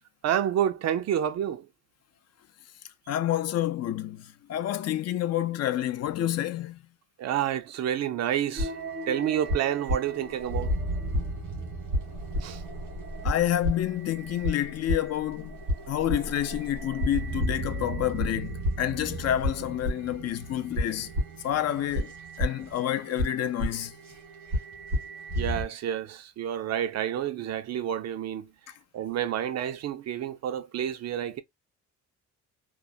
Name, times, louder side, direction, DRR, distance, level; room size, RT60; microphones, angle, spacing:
voice 1, 0.2-1.7 7.2-8.8 9.1-10.8 12.4-12.6 25.4-31.4, right 10 dB, 60° right, 0.5 m, -29 dB
voice 2, 3.1-6.8 13.2-21.1 21.4-23.9, left 12 dB, 55° left, 0.4 m, -29 dB
sound 1, 8.5-25.6, equal, 90° right, 1.6 m, -32 dB
3.2 x 2.0 x 2.3 m
cardioid pair, 90°, 30 cm